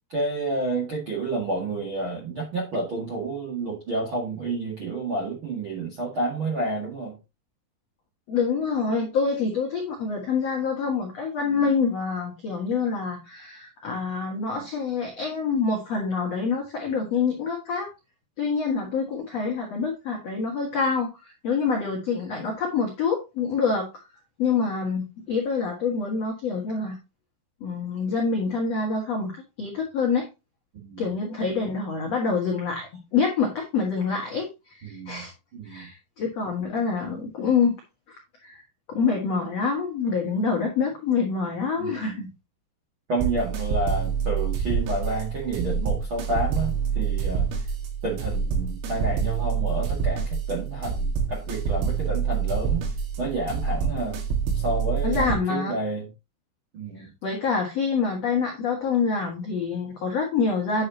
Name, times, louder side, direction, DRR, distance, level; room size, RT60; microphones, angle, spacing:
voice 1, 0.1-7.1 30.7-31.1 34.8-35.3 35.5-35.9 41.8-42.0 43.1-47.5 48.0-52.9 53.2-54.2 54.5-56.0 56.7-57.1, right 2 dB, 65° right, 1.2 m, -30 dB
voice 2, 8.3-17.9 18.4-24.0 24.4-27.0 27.6-30.3 31.0-35.3 35.6-37.7 38.4-38.6 38.9-42.3 55.0-55.7 57.0-60.9, left 5 dB, 70° left, 1.5 m, -26 dB
sound 1, 43.2-55.4, right 6 dB, 80° right, 4.5 m, -27 dB
10.0 x 6.7 x 2.9 m
omnidirectional pair, 6.0 m